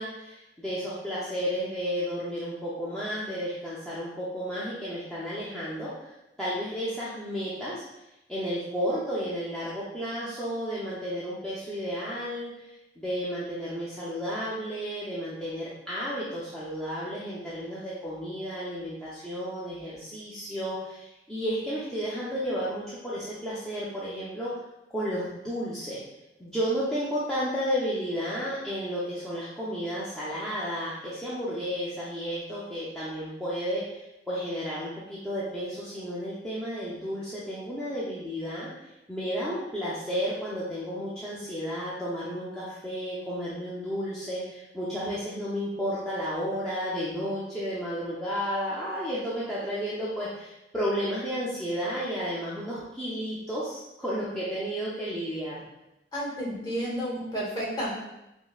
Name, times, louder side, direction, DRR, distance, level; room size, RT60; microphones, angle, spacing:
voice 1, 0.0-6.1 6.4-7.8 8.3-24.5 24.9-26.0 26.4-38.7 39.1-55.6, equal, 5° left, -11 dB, 0.5 m, -32 dB
voice 2, 56.1-57.9, equal, 20° left, -6 dB, 1.2 m, -31 dB
5.3 x 2.1 x 2.3 m, 0.91 s
head